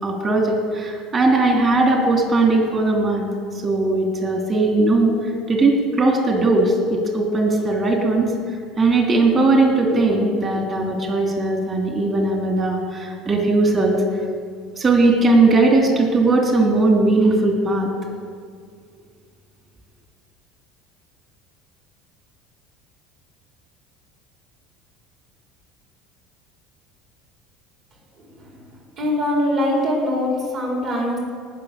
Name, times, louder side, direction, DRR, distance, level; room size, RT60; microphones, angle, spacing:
voice 1, 0.0-3.3 3.6-8.3 8.8-14.0 14.8-17.9, right 2 dB, 35° right, 1 dB, 3.2 m, -18 dB
voice 2, 29.0-31.2, left 1 dB, 55° right, -2 dB, 4.3 m, -22 dB
18.5 x 6.5 x 6.8 m, 2.1 s
supercardioid pair, 90°, 0 cm